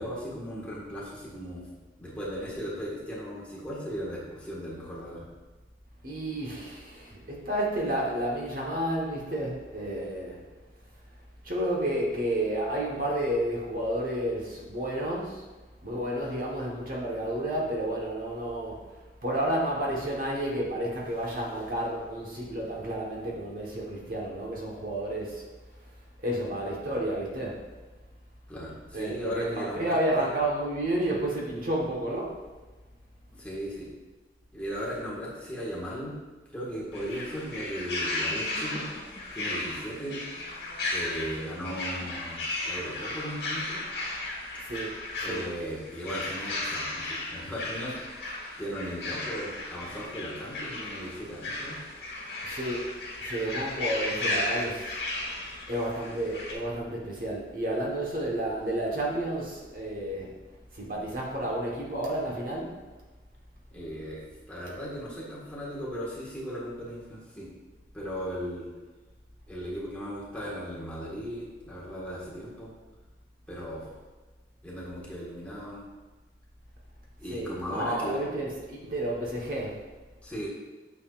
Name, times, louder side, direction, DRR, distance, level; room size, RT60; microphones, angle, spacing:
voice 1, 0.0-1.7 2.0-5.3 28.5-30.3 33.3-33.9 34.5-36.2 36.5-38.9 39.3-40.2 40.9-42.4 42.6-43.8 45.2-51.8 63.7-67.5 67.9-68.7 69.5-72.7 73.5-74.0 74.6-75.8 77.2-78.2 80.2-80.5, equal, 10° left, -6 dB, 1.7 m, -37 dB
voice 2, 6.0-10.4 11.4-15.4 15.8-18.8 19.2-25.4 26.2-27.5 28.9-32.4 44.6-44.9 45.2-45.4 52.4-52.9 53.2-55.0 55.2-55.4 55.7-60.3 60.7-62.8 77.3-79.7, right 1 dB, 50° right, -2 dB, 1.3 m, -31 dB
sound 1, 36.9-56.5, left 2 dB, 65° left, 1.6 m, -35 dB
8.9 x 6.7 x 2.5 m, 1.2 s
head